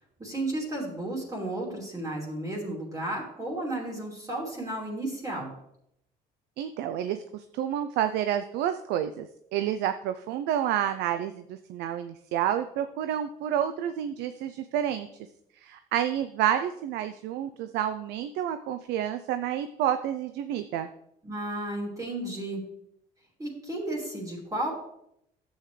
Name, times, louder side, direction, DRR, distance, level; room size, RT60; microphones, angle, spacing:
voice 1, 0.2-5.5 21.2-22.6 23.4-24.8, right 1 dB, 20° right, -4 dB, 2.9 m, -33 dB
voice 2, 6.6-9.3 9.5-15.1 15.6-20.9, right 10 dB, 85° right, 10 dB, 0.5 m, -29 dB
11.0 x 8.0 x 3.2 m, 0.76 s
cardioid pair, 110°, 17 cm